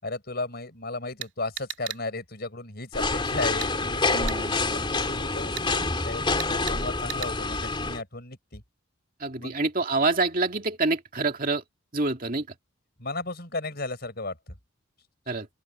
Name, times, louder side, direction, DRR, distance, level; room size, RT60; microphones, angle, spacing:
voice 1, 0.0-4.3 4.7-8.6 9.4-9.6 13.0-14.5, left 2 dB, 45° left, 5.4 m, -35 dB
sound 1, 1.2-2.0 3.6-3.7 4.3-4.4 5.6-5.7 6.4-6.8 7.1-7.3, right 10 dB, 55° right, 2.7 m, -35 dB
sound 2, 2.9-8.0, left 3 dB, 25° left, 3.6 m, -27 dB
voice 2, 4.1-4.6 9.2-11.6 11.9-12.5 15.3-15.5, right 3 dB, 40° right, 2.3 m, -26 dB
open air
head